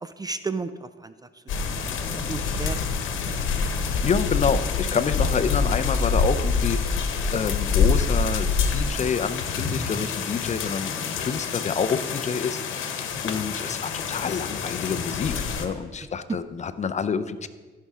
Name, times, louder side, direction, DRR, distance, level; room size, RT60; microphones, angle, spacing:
voice 1, 0.0-2.9, right 4 dB, 20° right, 12 dB, 0.4 m, -35 dB
sound 1, 1.5-15.7, left 5 dB, 85° left, 1.0 m, -26 dB
voice 2, 4.0-17.5, left 6 dB, 35° left, 12 dB, 0.5 m, -28 dB
14.0 x 5.5 x 3.7 m, 1.4 s
cardioid pair, 90°, 20 cm